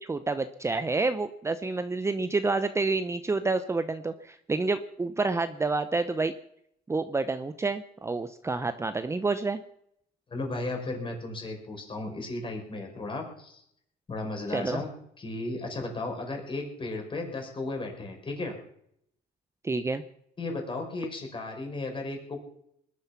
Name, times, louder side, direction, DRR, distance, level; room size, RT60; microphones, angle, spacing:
voice 1, 0.0-6.3 6.9-9.6 14.5-14.8 19.6-20.0, right 3 dB, 15° right, 11 dB, 0.8 m, -28 dB
voice 2, 10.3-13.6 14.1-14.9 15.2-18.5 20.4-22.4, left 2 dB, 30° left, 2 dB, 5.2 m, -35 dB
20.5 x 12.0 x 5.9 m, 0.73 s
cardioid pair, 110°, 17 cm